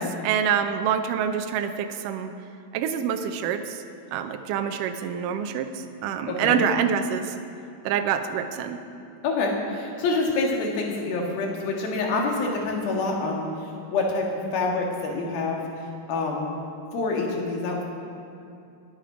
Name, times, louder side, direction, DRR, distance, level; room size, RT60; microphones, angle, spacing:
voice 1, 0.0-2.3 2.7-3.8 4.1-7.4 7.8-8.8, right 8 dB, 80° right, 7 dB, 1.9 m, -26 dB
voice 2, 6.3-6.6 9.2-16.5 16.9-17.8, left 3 dB, 70° left, -1 dB, 3.5 m, -27 dB
21.5 x 9.0 x 5.0 m, 2.7 s
omnidirectional pair, 4.5 m